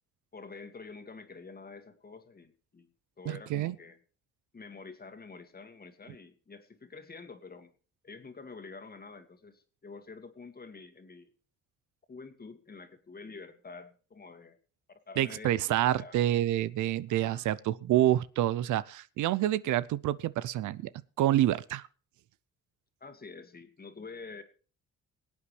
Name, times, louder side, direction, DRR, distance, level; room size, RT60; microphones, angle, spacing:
voice 1, 0.3-2.9 3.2-4.0 4.5-7.7 8.0-11.3 12.1-14.6 14.9-16.2 17.1-17.5 23.0-24.4, left 4 dB, 30° left, 2.0 m, -48 dB
voice 2, 3.3-3.8 15.2-20.9 21.2-21.9, right 13 dB, 75° right, 0.6 m, -28 dB
23.5 x 8.5 x 3.3 m
cardioid pair, 90°, 30 cm